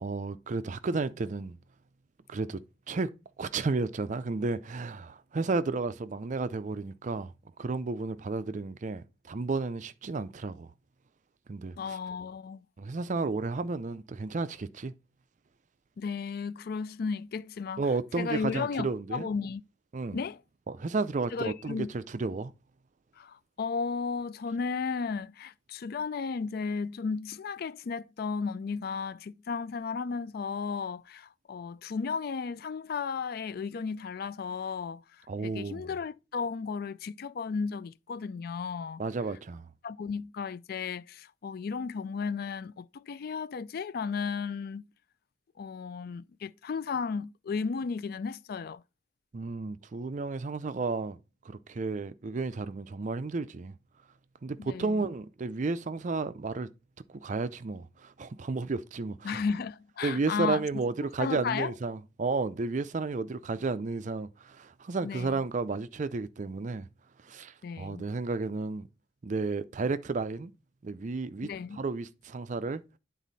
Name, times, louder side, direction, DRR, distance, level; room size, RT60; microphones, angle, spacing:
voice 1, 0.0-1.6 2.3-2.6 2.9-3.1 3.4-7.3 7.6-10.7 11.5-12.0 12.8-14.9 17.8-19.3 19.9-20.2 20.7-22.5 35.3-35.9 39.0-39.7 49.3-51.2 51.4-53.7 54.4-56.7 57.1-59.4 60.0-66.9 67.2-68.9 69.2-70.5 70.8-71.5 71.8-72.8, right 3 dB, 40° right, 0.4 m, -32 dB
voice 2, 11.8-12.7 16.0-17.8 18.2-19.6 20.1-20.4 21.3-21.9 23.2-39.0 39.8-44.8 45.6-48.8 54.6-55.1 59.2-60.6 61.2-61.7 65.0-65.4 67.6-68.1 71.4-71.8, left 5 dB, 50° left, 0.3 m, -34 dB
9.3 x 4.0 x 4.0 m
head